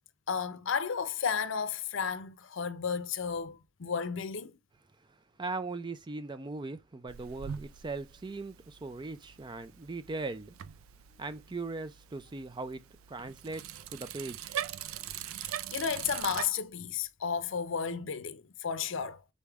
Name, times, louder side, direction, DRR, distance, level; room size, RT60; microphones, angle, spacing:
voice 1, 0.3-4.6 15.4-19.2, left 6 dB, 65° left, 0.6 m, -33 dB
voice 2, 5.1-10.5 11.2-12.8 13.1-14.5, right 3 dB, 20° right, 0.4 m, -39 dB
Bicycle, 7.1-16.5, right 10 dB, 90° right, 0.4 m, -42 dB
4.1 x 3.4 x 3.5 m
head